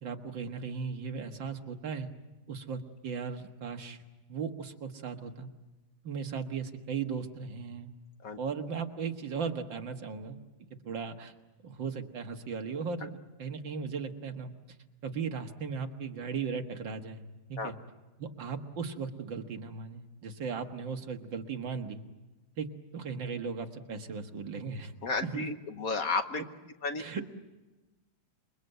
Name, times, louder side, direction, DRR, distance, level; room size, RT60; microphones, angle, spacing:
voice 1, 0.0-2.1 2.5-4.0 4.3-5.5 6.0-7.9 8.4-10.4 10.8-11.3 11.6-14.5 15.0-17.2 17.5-17.8 18.2-22.0 22.6-22.7 22.9-24.9 25.2-25.5 27.0-27.3, right 5 dB, 75° right, 5 dB, 2.3 m, -37 dB
voice 2, 25.0-26.4 26.8-27.0, left 4 dB, 55° left, 8 dB, 1.3 m, -32 dB
28.0 x 23.0 x 8.0 m, 1.1 s
omnidirectional pair, 2.1 m